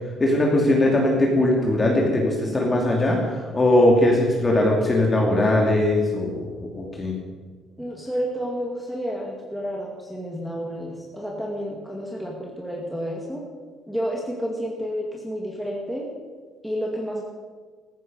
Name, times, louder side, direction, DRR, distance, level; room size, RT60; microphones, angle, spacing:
voice 1, 0.2-7.1, left 1 dB, 20° left, -1 dB, 2.7 m, -20 dB
voice 2, 7.8-13.4 13.9-16.1 16.6-17.2, equal, ahead, -2 dB, 2.3 m, -30 dB
15.0 x 14.0 x 5.5 m, 1.5 s
cardioid pair, 130°, 0 cm